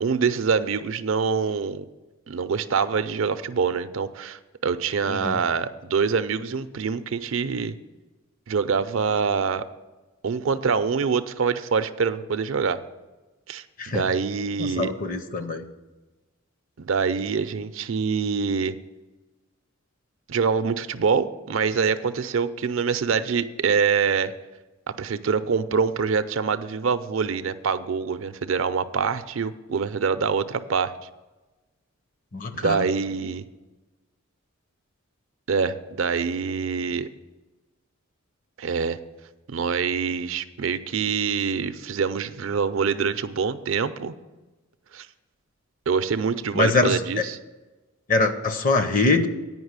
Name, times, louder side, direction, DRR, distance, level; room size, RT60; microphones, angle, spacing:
voice 1, 0.0-1.8 2.3-7.7 8.5-9.7 10.2-12.8 13.5-13.6 13.9-14.9 16.8-18.7 20.3-24.3 24.9-30.9 32.5-33.4 35.5-37.1 38.6-39.0 39.5-44.1 44.9-45.1 45.9-47.4, right 5 dB, 65° right, 11 dB, 0.5 m, -25 dB
voice 2, 14.6-15.6 32.3-32.8 46.5-47.2 48.1-49.3, left 3 dB, 40° left, 9 dB, 0.7 m, -23 dB
9.4 x 5.4 x 8.0 m, 1.1 s
head